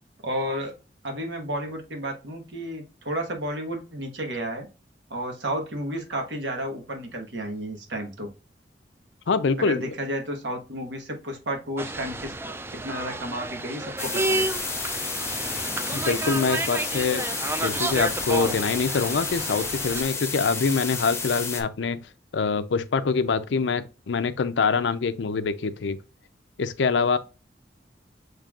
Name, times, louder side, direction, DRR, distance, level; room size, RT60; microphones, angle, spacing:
voice 1, 0.2-0.7 1.0-4.7 5.1-8.3 9.6-12.3 12.7-14.5, right 1 dB, 90° right, 1.3 m, -32 dB
voice 2, 9.3-9.9 15.9-17.3 17.6-22.0 22.3-26.0 26.6-27.2, left 5 dB, 85° left, 0.5 m, -25 dB
sound 1, 11.8-20.0, right 2 dB, 15° right, 0.3 m, -31 dB
sound 2, 14.0-21.6, left 4 dB, 15° left, 0.7 m, -31 dB
6.7 x 3.3 x 2.4 m
head